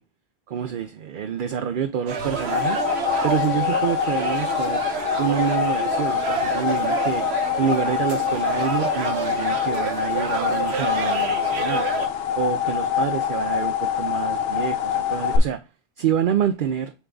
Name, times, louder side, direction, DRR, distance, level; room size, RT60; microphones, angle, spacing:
voice 1, 0.5-2.8 3.2-4.8 5.2-7.2 7.6-11.9 12.3-15.6 16.0-16.9, right 8 dB, 60° right, 0.6 m, -27 dB
sound 1, 2.1-12.1, right 5 dB, 85° right, 1.2 m, -29 dB
sound 2, 2.2-15.4, left 9 dB, 75° left, 0.9 m, -25 dB
7.2 x 3.5 x 3.8 m
omnidirectional pair, 1.1 m